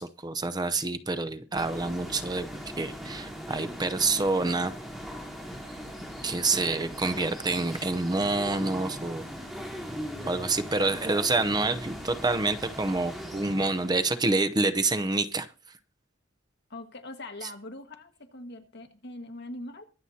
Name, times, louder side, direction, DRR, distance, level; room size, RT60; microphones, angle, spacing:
voice 1, 0.0-2.5 2.8-4.7 6.2-9.2 10.3-15.5, right 3 dB, 20° right, 12 dB, 0.7 m, -27 dB
sound 1, 1.5-14.5, equal, ahead, 3.7 m, -40 dB
voice 2, 16.7-19.8, left 1 dB, 60° left, 5 dB, 1.7 m, -42 dB
23.0 x 7.8 x 2.8 m, 0.35 s
head